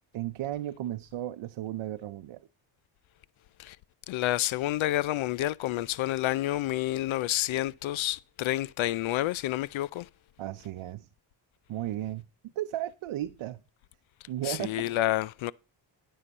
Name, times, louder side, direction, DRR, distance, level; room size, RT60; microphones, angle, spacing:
voice 1, 0.1-2.5 10.4-11.1 11.7-12.3 12.6-13.6 14.3-14.9, right 13 dB, 70° right, 0.7 m, -35 dB
voice 2, 4.1-10.1 14.4-15.5, left 15 dB, 70° left, 0.5 m, -29 dB
12.5 x 5.8 x 5.3 m
cardioid pair, 65°, 49 cm